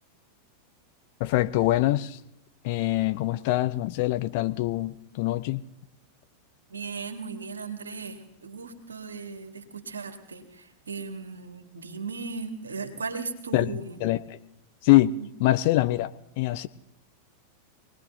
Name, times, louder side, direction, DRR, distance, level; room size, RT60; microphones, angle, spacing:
voice 1, 1.2-2.2 2.6-5.6 13.5-13.7 14.0-14.4 14.8-15.1 15.4-16.7, left 16 dB, 50° left, 13 dB, 0.6 m, -24 dB
voice 2, 6.7-14.0, right 4 dB, 70° right, 4 dB, 1.9 m, -37 dB
25.0 x 19.0 x 2.7 m, 0.86 s
figure-of-eight pair, 90°, 0 cm